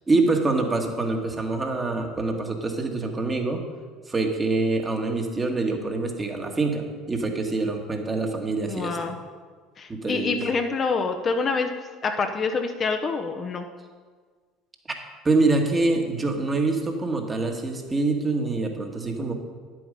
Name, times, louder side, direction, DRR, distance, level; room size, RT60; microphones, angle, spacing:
voice 1, 0.1-3.6 4.1-9.0 9.9-10.4 15.2-19.3, right 3 dB, 25° right, 3 dB, 1.7 m, -25 dB
voice 2, 8.7-9.2 9.8-11.7 12.0-13.7, left 4 dB, 35° left, 5 dB, 0.9 m, -26 dB
10.0 x 7.9 x 5.3 m, 1.5 s
figure-of-eight pair, 65°, 0 cm